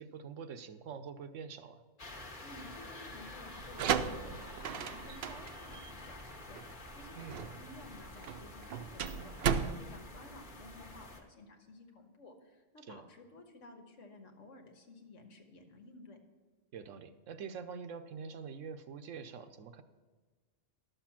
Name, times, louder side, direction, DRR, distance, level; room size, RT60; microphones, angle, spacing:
voice 1, 0.0-1.8 7.1-7.4 12.8-13.0 16.7-19.8, right 6 dB, 85° right, 9 dB, 1.1 m, -45 dB
sound 1, 2.0-11.2, left 2 dB, 45° left, 1.3 m, -49 dB
voice 2, 2.4-16.2, left 2 dB, 85° left, 4 dB, 1.6 m, -54 dB
sound 2, 3.5-11.1, right 7 dB, 60° right, 0.7 m, -36 dB
12.0 x 6.8 x 5.9 m, 1.4 s
omnidirectional pair, 1.3 m